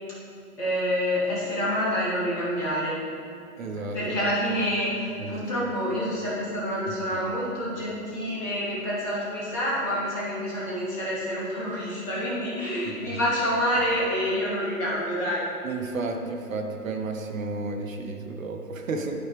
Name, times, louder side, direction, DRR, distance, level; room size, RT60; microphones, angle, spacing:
voice 1, 0.6-3.0 3.9-15.4, equal, 5° left, -7 dB, 0.5 m, -27 dB
voice 2, 3.6-4.2 5.2-5.3 7.1-7.2 12.8-13.2 15.6-19.1, right 3 dB, 60° right, 3 dB, 0.9 m, -32 dB
11.0 x 4.3 x 3.4 m, 2.5 s
figure-of-eight pair, 135°, 45 cm